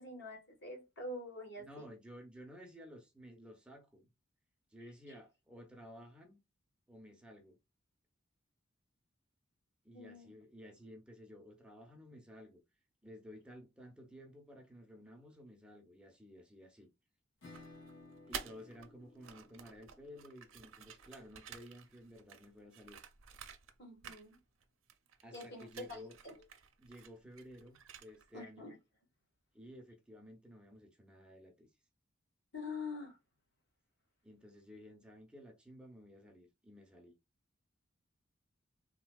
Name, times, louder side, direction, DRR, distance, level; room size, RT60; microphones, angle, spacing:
voice 1, 0.0-1.9 9.9-10.3 23.8-24.4 25.3-26.4 28.3-28.8 32.5-33.2, left 2 dB, 60° left, 1.4 m, -46 dB
voice 2, 1.6-4.1 4.7-6.4 6.9-7.6 9.8-12.6 13.0-16.9 18.3-23.0 25.2-26.2 26.8-28.7 29.5-31.7 34.2-37.2, equal, 5° right, 0.6 m, -54 dB
Acoustic guitar / Strum, 17.4-22.8, left 2 dB, 80° left, 2.0 m, -60 dB
sound 1, 17.5-18.9 19.2-23.8 24.0-24.6 24.9-28.3, right 7 dB, 75° right, 0.6 m, -51 dB
3.5 x 2.7 x 2.2 m
head